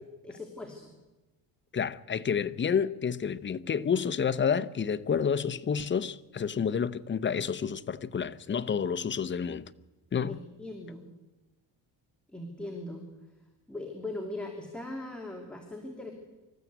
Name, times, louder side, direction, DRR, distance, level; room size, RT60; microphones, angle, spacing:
voice 1, 0.2-0.9 10.3-11.0 12.3-13.0 13.7-16.1, left 2 dB, ahead, 2.8 m, -39 dB
voice 2, 1.7-9.7 10.1-10.4, left 7 dB, 30° left, 0.8 m, -29 dB
26.0 x 14.0 x 8.2 m
cardioid pair, 125°, 41 cm